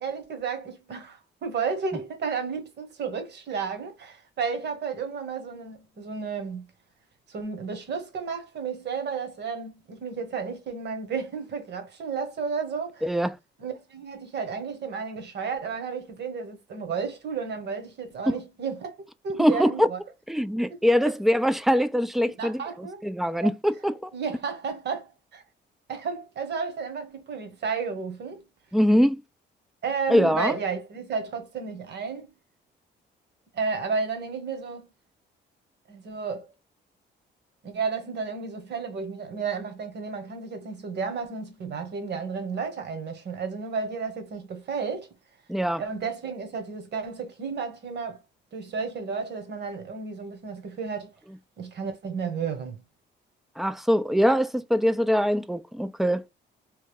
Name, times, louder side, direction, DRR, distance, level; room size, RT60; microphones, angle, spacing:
voice 1, 0.0-6.7 7.3-13.1 13.6-20.0 21.0-21.1 22.4-23.0 24.1-25.4 25.9-28.4 29.8-32.3 33.5-34.9 35.9-36.5 37.6-45.1 45.8-48.2 48.5-51.1 51.6-52.8, right 5 dB, 60° right, 1.2 m, -32 dB
voice 2, 13.0-13.3 19.4-19.9 20.3-24.1 28.7-29.2 30.1-30.6 45.5-45.8 53.6-56.3, equal, ahead, 0.3 m, -23 dB
3.2 x 2.3 x 3.4 m
cardioid pair, 90°, 20 cm